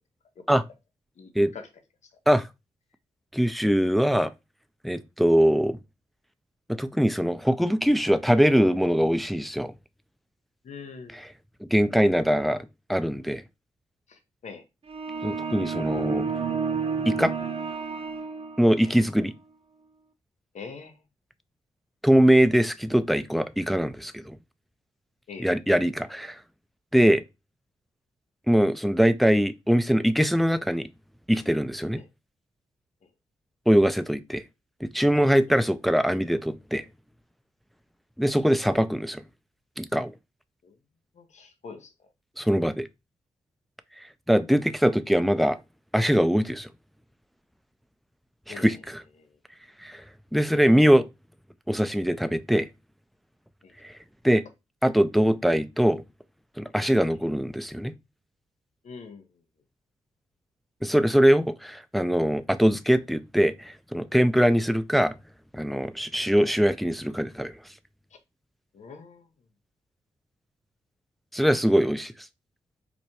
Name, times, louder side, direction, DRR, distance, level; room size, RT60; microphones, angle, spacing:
voice 1, 1.2-1.7 10.6-11.2 14.1-14.6 18.9-19.0 20.5-21.0 25.3-25.6 32.0-32.1 35.5-35.6 40.6-40.7 41.2-41.9 48.5-48.8 49.2-49.4 53.6-53.7 58.8-59.3 68.7-69.3, left 5 dB, 60° left, 0.8 m, -43 dB
voice 2, 3.3-4.3 4.8-5.8 6.7-9.7 11.1-11.3 11.7-13.4 15.2-16.3 17.1-17.3 18.6-19.3 22.0-24.4 25.4-26.4 26.9-27.2 28.5-30.9 31.3-32.0 33.7-34.4 34.8-36.8 38.2-39.2 39.8-40.1 42.4-42.9 44.3-45.6 45.9-46.7 48.5-49.0 49.8-50.0 50.3-51.1 51.7-52.7 53.8-53.9 54.2-54.4 54.8-56.0 56.6-57.9 60.8-65.2 65.5-67.5 71.3-72.1, equal, ahead, 0.4 m, -22 dB
sound 1, 14.9-18.9, right 5 dB, 45° right, 0.7 m, -30 dB
4.3 x 2.2 x 2.8 m
supercardioid pair, 40°, 13 cm